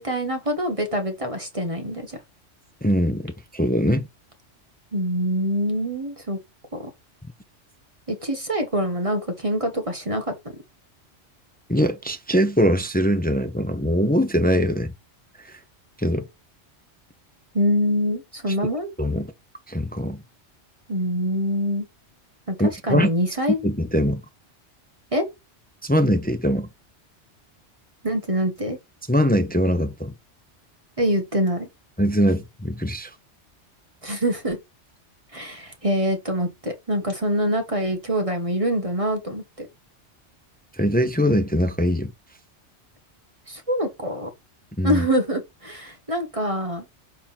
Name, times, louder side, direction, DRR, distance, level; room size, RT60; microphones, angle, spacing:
voice 1, 0.0-2.2 4.9-6.4 6.7-6.9 8.1-10.3 17.5-18.9 20.9-21.8 22.5-22.6 22.9-23.7 25.1-25.3 28.0-28.8 31.0-31.7 34.0-34.6 35.3-39.7 43.5-44.3 44.8-47.0, equal, 30° right, 1.5 m, -25 dB
voice 2, 2.8-4.1 11.7-14.9 15.4-15.6 16.0-16.3 18.5-18.6 19.0-19.3 19.7-20.2 22.6-23.1 23.6-24.2 25.8-26.7 29.1-30.1 32.0-33.1 40.8-42.1 44.8-45.0, equal, 10° left, 0.6 m, -22 dB
6.7 x 3.7 x 5.8 m
omnidirectional pair, 1.2 m